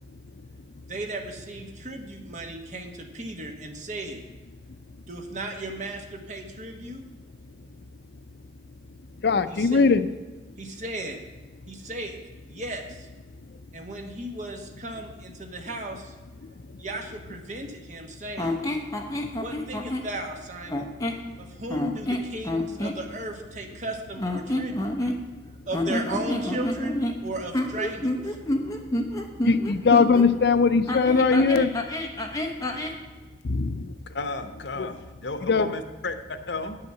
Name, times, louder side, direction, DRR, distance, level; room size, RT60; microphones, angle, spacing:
voice 1, 0.9-4.2 5.1-7.1 9.5-9.8 10.6-11.2 11.7-12.2 12.5-13.1 13.7-16.1 16.8-18.6 19.4-20.9 21.4-25.0 25.7-28.4, right 2 dB, 45° right, 4 dB, 1.3 m, -36 dB
voice 2, 9.2-10.1 29.4-31.7 33.4-33.9 35.5-35.7, left 4 dB, 65° left, 12 dB, 0.5 m, -20 dB
sound 1, 18.4-20.1 20.7-21.3 21.7-23.0 24.2-25.4 25.7-30.3 30.9-33.0, left 1 dB, 20° left, 0.9 m, -28 dB
voice 3, 34.1-34.9 35.2-36.8, left 3 dB, 85° left, 9 dB, 0.9 m, -33 dB
9.1 x 5.8 x 7.6 m, 1.2 s
head